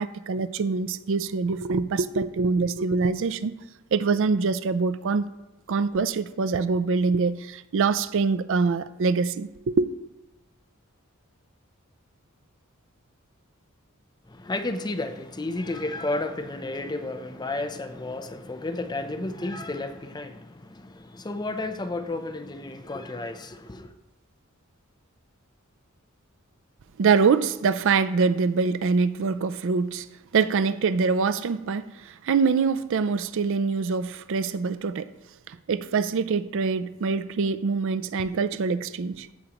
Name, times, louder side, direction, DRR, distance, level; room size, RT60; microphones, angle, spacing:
voice 1, 0.0-3.5 3.9-5.3 5.7-9.9 27.0-30.1 30.3-35.1 35.5-39.3, right 4 dB, 65° right, 0.4 m, -24 dB
voice 2, 14.3-23.9, left 2 dB, 20° left, 0.6 m, -32 dB
15.5 x 6.3 x 3.0 m
head